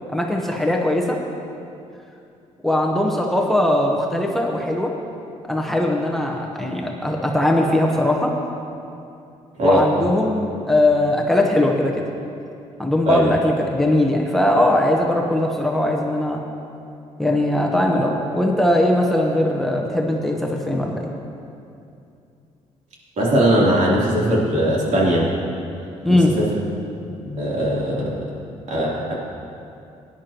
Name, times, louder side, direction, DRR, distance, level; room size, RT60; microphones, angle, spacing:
voice 1, 0.1-1.2 2.6-4.9 5.5-8.3 9.6-12.0 12.8-16.4 17.2-21.1 26.0-26.3, left 1 dB, ahead, 0 dB, 0.9 m, -20 dB
voice 2, 9.6-9.9 13.0-13.3 23.2-25.3 26.1-26.5 27.2-28.1 28.7-29.1, right 1 dB, 65° right, -5 dB, 3.2 m, -19 dB
17.0 x 10.5 x 2.9 m, 2.6 s
cardioid pair, 115°, 13 cm